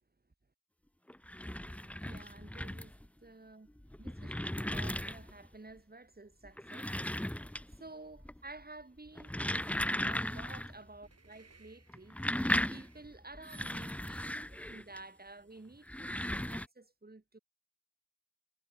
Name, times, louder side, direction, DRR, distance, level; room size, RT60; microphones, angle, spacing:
sound 1, 1.1-3.1 3.8-5.5 6.4-7.9 8.2-8.6 9.1-10.8 11.0-11.1 11.9-15.0 15.7-16.7, left 1 dB, 5° left, 1.3 m, -37 dB
voice 1, 1.8-2.9 3.2-6.9 7.8-12.2 12.7-17.4, right 2 dB, 25° right, 7.9 m, -52 dB
sound 2, 11.0-16.3, right 4 dB, 45° right, 7.7 m, -64 dB
supercardioid pair, 50°, 34 cm